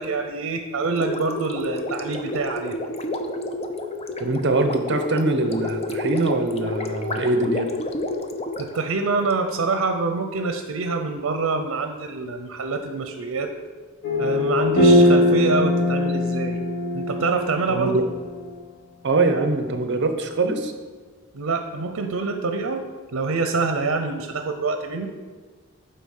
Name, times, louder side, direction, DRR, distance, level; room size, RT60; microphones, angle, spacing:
voice 1, 0.0-2.7 8.6-13.5 14.2-16.6 16.9-18.0 21.3-22.8 23.1-25.1, right 4 dB, 85° right, 6 dB, 0.6 m, -26 dB
Gurgling, 0.9-9.3, left 1 dB, 30° left, 0.6 m, -30 dB
voice 2, 4.2-7.7 17.7-18.0 19.0-20.7, right 2 dB, 55° right, 7 dB, 0.8 m, -23 dB
sound 1, 14.0-18.5, left 1 dB, 55° left, 1.3 m, -20 dB
9.2 x 3.9 x 6.4 m, 1.5 s
head